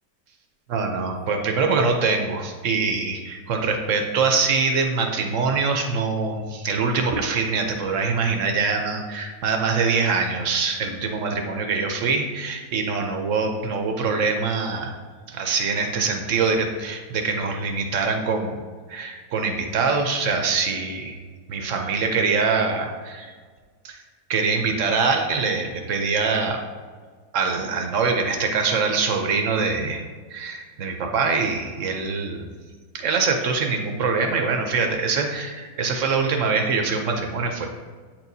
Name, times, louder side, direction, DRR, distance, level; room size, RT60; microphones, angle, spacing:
voice 1, 0.7-14.9 15.3-18.5 18.9-21.2 21.5-23.3 23.8-24.0 24.3-26.6 27.3-30.0 30.3-32.4 32.9-37.7, right 4 dB, 65° right, 4 dB, 0.8 m, -24 dB
8.3 x 4.5 x 2.7 m, 1.5 s
omnidirectional pair, 1.9 m